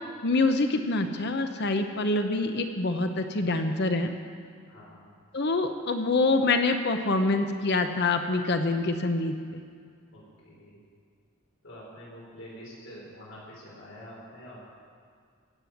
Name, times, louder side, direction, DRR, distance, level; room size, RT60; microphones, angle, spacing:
voice 1, 0.2-4.1 5.3-9.6, left 2 dB, 55° left, 6 dB, 0.9 m, -26 dB
voice 2, 4.7-5.1 10.1-10.8 11.6-14.6, equal, 75° left, -5 dB, 5.0 m, -46 dB
17.0 x 7.7 x 8.4 m, 2.1 s
head